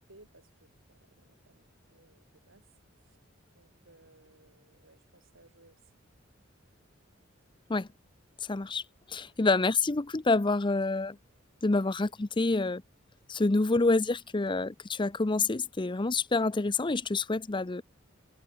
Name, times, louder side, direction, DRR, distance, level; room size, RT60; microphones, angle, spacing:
voice 1, 0.1-2.7 3.0-3.2 3.5-5.8, right 2 dB, 80° right, 5.7 m, -61 dB
voice 2, 8.4-8.8 9.1-11.2 11.6-12.8 13.3-17.8, left 3 dB, 25° left, 0.6 m, -27 dB
head